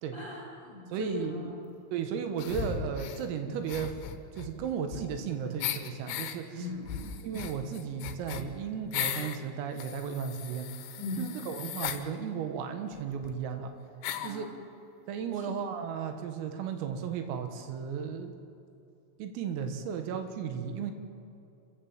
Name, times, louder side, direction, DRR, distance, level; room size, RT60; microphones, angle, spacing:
voice 1, 0.1-1.7 5.5-5.6 6.5-7.2 11.0-11.3 14.1-14.5 15.4-15.6, left 2 dB, 15° left, -3 dB, 3.7 m, -39 dB
voice 2, 0.9-1.3 1.9-4.0 4.3-6.6 7.2-10.7 11.2-13.7 14.2-14.5 15.1-18.3 19.2-20.9, right 7 dB, 85° right, 7 dB, 4.1 m, -35 dB
sound 1, 2.4-3.2 3.6-5.3 5.6-6.4 6.8-9.4 9.8-12.0 12.9-13.0 13.2-13.3 14.0-14.4, left 9 dB, 70° left, 3.1 m, -37 dB
27.0 x 15.0 x 7.6 m, 2.7 s
omnidirectional pair, 5.9 m